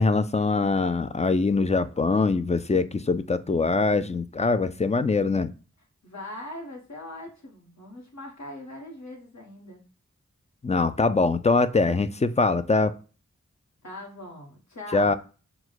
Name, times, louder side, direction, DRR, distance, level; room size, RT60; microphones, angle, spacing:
voice 1, 0.0-5.5 10.6-12.9 14.9-15.1, left 3 dB, 25° left, 12 dB, 0.4 m, -23 dB
voice 2, 6.0-9.8 13.8-15.2, left 1 dB, 65° left, -1 dB, 1.5 m, -41 dB
4.6 x 2.2 x 3.9 m, 0.36 s
cardioid pair, 45°, 29 cm